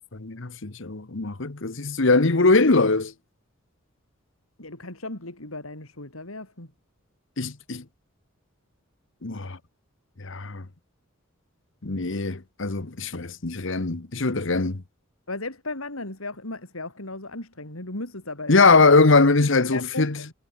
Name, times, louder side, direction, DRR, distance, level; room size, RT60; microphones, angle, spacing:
voice 1, 0.1-3.1 7.4-7.8 9.2-9.6 10.2-10.6 11.8-14.8 18.5-20.2, left 3 dB, 65° left, 1.3 m, -21 dB
voice 2, 4.6-6.7 15.3-19.0 19.7-20.3, left 2 dB, 85° left, 5.1 m, -36 dB
head